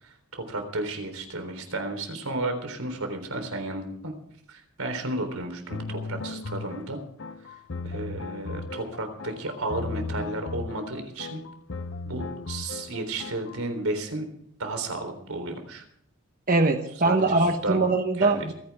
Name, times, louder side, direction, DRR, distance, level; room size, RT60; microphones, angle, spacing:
voice 1, 0.0-4.1 4.5-7.0 7.8-11.4 12.0-14.3 14.6-15.8 17.0-17.8 18.2-18.5, right 2 dB, 85° right, 6 dB, 3.8 m, -33 dB
sound 1, 5.7-13.6, left 3 dB, 60° left, 0.7 m, -36 dB
voice 2, 16.5-18.5, right 3 dB, 40° right, 5 dB, 1.1 m, -22 dB
27.0 x 10.0 x 3.6 m, 0.68 s
head